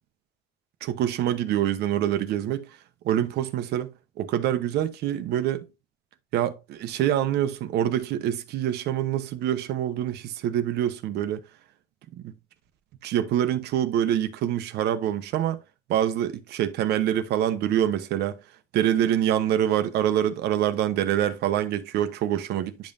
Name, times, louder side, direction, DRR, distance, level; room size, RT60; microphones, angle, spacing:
voice 1, 0.8-2.7 3.0-5.7 6.3-11.4 12.2-12.3 13.0-15.6 15.9-18.4 18.7-22.9, right 11 dB, 75° right, 1.0 m, -25 dB
10.5 x 5.3 x 2.6 m
cardioid pair, 110°, 17 cm